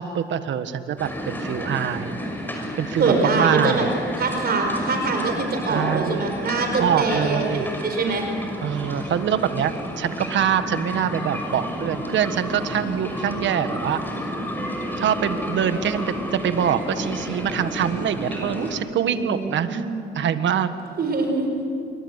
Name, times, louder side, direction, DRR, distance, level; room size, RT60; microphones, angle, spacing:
voice 1, 0.0-2.2 2.8-3.9 5.7-6.2 6.8-7.6 8.6-14.0 15.0-19.8 20.1-20.7, right 9 dB, 70° right, 10 dB, 1.5 m, -24 dB
sound 1, 1.0-18.8, equal, 10° left, 6.0 m, -31 dB
voice 2, 3.0-3.8 4.2-8.2 19.0-20.0 21.0-21.5, right 3 dB, 50° right, 4 dB, 4.8 m, -24 dB
27.5 x 23.0 x 8.2 m, 2.5 s
cardioid pair, 90°, 20 cm